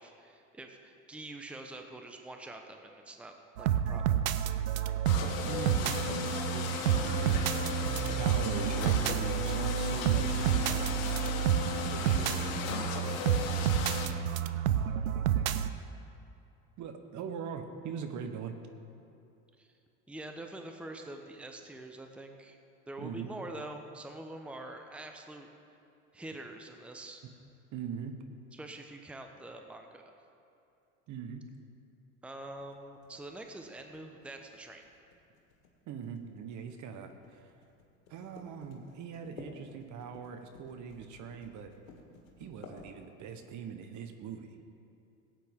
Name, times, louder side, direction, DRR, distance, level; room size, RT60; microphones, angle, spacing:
voice 1, 0.0-4.2 19.6-19.7 20.1-22.6 22.9-25.5 26.1-27.2 28.5-30.1 32.2-34.8, right 2 dB, 5° right, 4 dB, 0.9 m, -45 dB
sound 1, 3.6-15.7, right 10 dB, 85° right, 0.6 m, -30 dB
sound 2, 5.1-14.1, left 6 dB, 65° left, 1.7 m, -36 dB
voice 2, 5.4-7.7 8.2-11.2 11.9-12.4 16.8-18.6 23.0-23.3 27.7-28.2 31.1-31.4 35.9-37.5 38.1-41.7 42.4-44.6, right 7 dB, 45° right, 7 dB, 1.2 m, -42 dB
sound 3, 32.4-43.4, left 4 dB, 85° left, 1.8 m, -54 dB
17.0 x 8.9 x 3.7 m, 2.7 s
hypercardioid pair, 80°, 40 cm